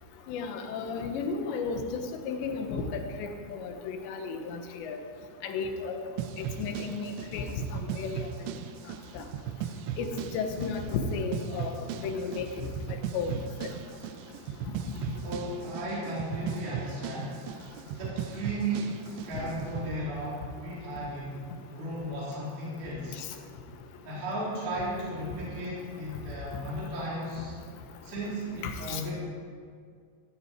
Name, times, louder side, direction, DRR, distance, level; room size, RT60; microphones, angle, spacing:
voice 1, 0.3-5.0 5.4-6.0 6.6-8.3 9.2-9.3 10.0-10.1 10.3-11.7 12.0-12.4 13.1-13.7 28.9-29.0, left 5 dB, 85° left, 5 dB, 3.5 m, -33 dB
sound 1, 6.2-19.9, right 10 dB, 85° right, 2.9 m, -38 dB
voice 2, 15.2-17.4 18.0-21.4 21.7-23.2 24.0-27.5 28.0-29.1, right 1 dB, 60° right, -8 dB, 5.8 m, -35 dB
17.0 x 16.5 x 4.6 m, 2.1 s
omnidirectional pair, 4.9 m